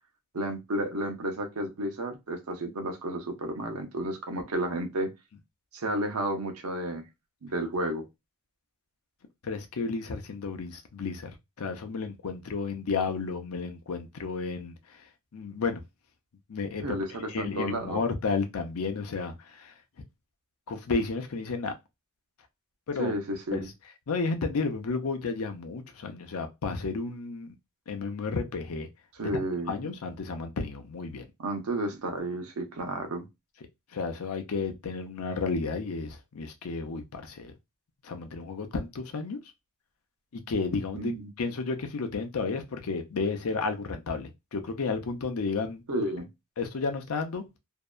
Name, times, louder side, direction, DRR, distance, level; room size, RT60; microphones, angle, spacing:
voice 1, 0.3-5.1 5.7-7.0 7.4-8.1 16.8-18.0 23.0-23.7 29.2-29.8 31.4-33.3 40.9-41.3 45.9-46.3, right 1 dB, 80° right, 0.7 m, -32 dB
voice 2, 9.4-11.3 11.6-15.0 15.3-15.8 16.5-17.0 17.3-19.7 20.7-21.7 22.9-23.1 23.5-23.7 24.1-27.5 27.9-28.9 29.2-29.3 29.7-31.3 33.9-37.5 38.0-39.4 40.3-45.8 46.6-47.5, left 4 dB, 75° left, 0.5 m, -32 dB
2.6 x 2.1 x 2.2 m
head